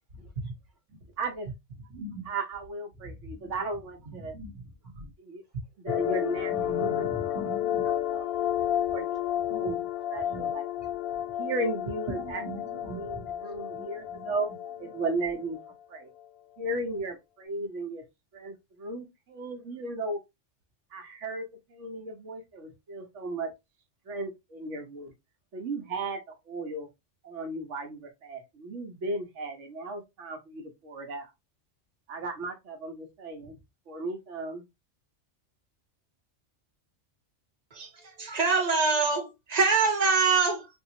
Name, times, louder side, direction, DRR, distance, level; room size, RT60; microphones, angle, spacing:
voice 1, 1.2-1.5 2.2-4.4 5.2-5.4 5.8-7.4 7.8-8.3 8.6-9.2 9.4-9.8 10.1-10.7 11.4-12.4 12.7-14.5 14.8-15.6 15.9-16.1 16.6-18.0 18.3-20.2 20.9-23.5 24.1-25.1 25.5-26.9 27.2-31.3 32.1-33.6 33.9-34.6, right 2 dB, 85° right, 1.3 m, -35 dB
voice 2, 1.9-2.2 3.1-3.5 4.1-4.7 4.9-5.1 5.9-6.0 6.5-7.9 9.5-9.8 10.3-10.5 12.2-13.3 13.7-13.8 14.1-14.3, right 1 dB, 65° right, 1.3 m, -41 dB
sound 1, 5.9-15.7, left 11 dB, 60° left, 0.7 m, -31 dB
voice 3, 38.2-40.7, right 4 dB, 35° right, 1.1 m, -24 dB
3.6 x 2.5 x 2.7 m
omnidirectional pair, 1.2 m